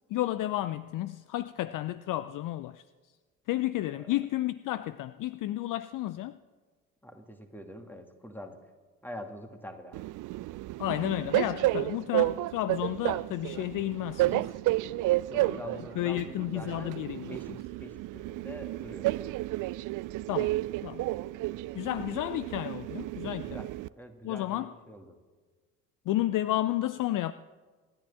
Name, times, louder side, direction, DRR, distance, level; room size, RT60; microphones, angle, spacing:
voice 1, 0.1-2.8 3.5-6.4 10.8-14.6 15.4-15.6 16.0-17.3 20.3-21.1 21.7-23.7 24.2-24.7 26.1-27.3, left 14 dB, 50° left, 0.5 m, -32 dB
voice 2, 7.0-8.6 9.0-10.1 15.3-17.5 17.8-19.4 23.4-23.7 24.0-25.2, equal, 5° left, 2.2 m, -45 dB
Train, 9.9-23.9, right 17 dB, 45° right, 0.5 m, -31 dB
26.0 x 11.0 x 3.6 m
hypercardioid pair, 50°, 44 cm